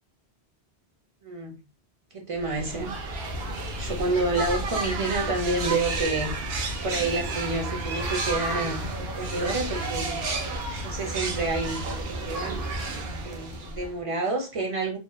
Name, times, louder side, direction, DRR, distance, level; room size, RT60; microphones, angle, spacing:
voice 1, 1.2-1.6 2.1-3.0 3.8-10.2 10.8-12.6 13.2-15.0, right 2 dB, 40° right, 0.5 m, -29 dB
sound 1, 2.4-14.0, right 2 dB, 70° right, 0.8 m, -31 dB
2.7 x 2.1 x 2.3 m
omnidirectional pair, 1.1 m